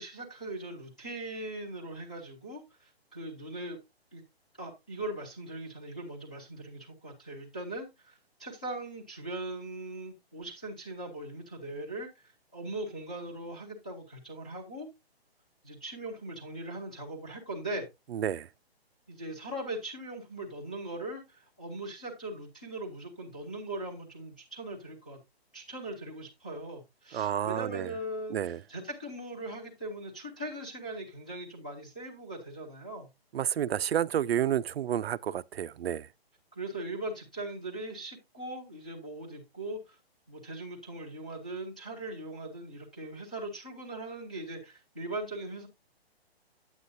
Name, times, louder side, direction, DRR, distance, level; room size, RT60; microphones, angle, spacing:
voice 1, 0.0-3.8 4.1-4.2 4.6-14.9 15.6-17.9 19.1-25.2 25.5-33.1 36.5-40.0 40.3-45.7, right 1 dB, 10° left, 0.4 m, -40 dB
voice 2, 18.1-18.5 27.1-27.9 28.3-28.6 33.3-36.1, right 10 dB, 75° right, 0.5 m, -30 dB
9.3 x 8.2 x 2.6 m
hypercardioid pair, 165°, 31 cm